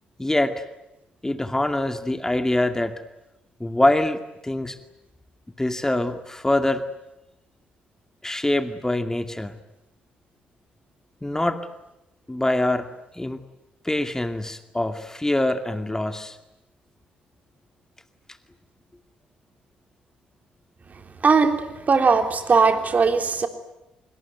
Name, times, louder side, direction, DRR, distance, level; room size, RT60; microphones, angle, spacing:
voice 1, 0.2-0.7 1.2-3.0 3.6-4.8 5.6-6.8 8.2-9.6 11.2-11.7 12.3-13.4 13.8-16.4, left 1 dB, 15° left, 8 dB, 2.3 m, -24 dB
voice 2, 21.2-21.6 21.9-23.5, right 4 dB, 40° right, 7 dB, 3.5 m, -19 dB
25.5 x 23.5 x 9.5 m, 0.91 s
hypercardioid pair, 45°, 4 cm